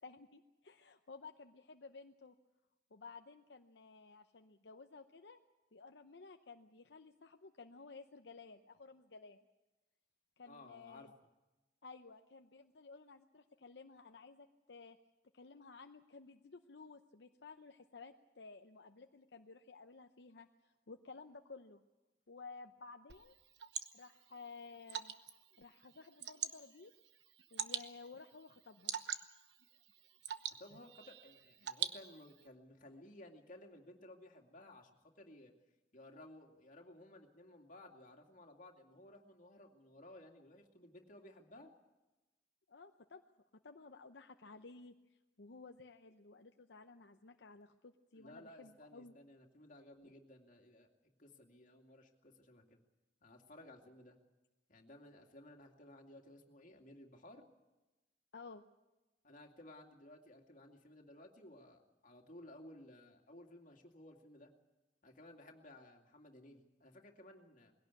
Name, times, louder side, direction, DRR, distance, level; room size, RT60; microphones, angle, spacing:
voice 1, 0.0-2.3 2.9-5.4 5.7-9.4 10.4-11.1 11.8-15.0 15.3-21.8 22.3-23.4 23.9-25.2 25.6-26.9 27.5-29.0 42.7-43.2 43.6-44.9 45.4-49.2 58.3-58.6, left 4 dB, 75° left, 5 dB, 0.8 m, -55 dB
voice 2, 10.4-11.1 30.6-35.5 35.9-41.7 48.1-52.8 53.2-54.2 54.7-57.5 59.2-64.5 65.0-67.7, left 1 dB, 50° left, 2 dB, 2.5 m, -57 dB
Water / Drip, 23.1-32.5, right 9 dB, 80° right, 1.0 m, -46 dB
21.0 x 17.0 x 8.4 m, 1.1 s
head